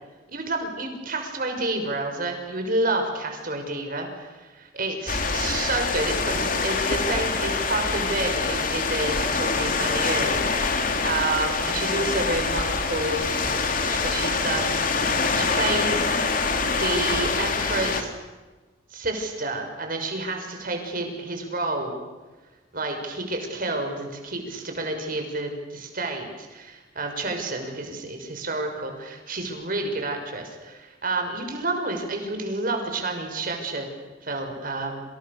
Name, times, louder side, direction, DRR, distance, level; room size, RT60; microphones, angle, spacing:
voice 1, 0.3-16.1 16.8-18.1 18.9-22.0 22.7-33.9 34.2-35.0, right 2 dB, 50° right, 4 dB, 6.1 m, -29 dB
sound 1, 5.1-18.0, left 4 dB, 50° left, 3.0 m, -25 dB
29.0 x 28.5 x 6.8 m, 1.2 s
head